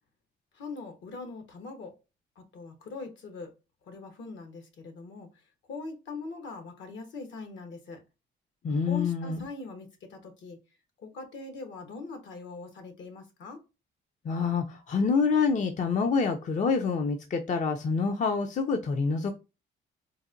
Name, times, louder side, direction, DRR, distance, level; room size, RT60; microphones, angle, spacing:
voice 1, 0.5-1.9 2.4-3.5 3.8-8.0 8.9-10.6 11.0-13.6, left 4 dB, 70° left, 1.1 m, -42 dB
voice 2, 8.6-9.4 14.2-19.3, left 5 dB, 40° left, 0.5 m, -27 dB
4.0 x 2.1 x 2.5 m
cardioid pair, 90°, 20 cm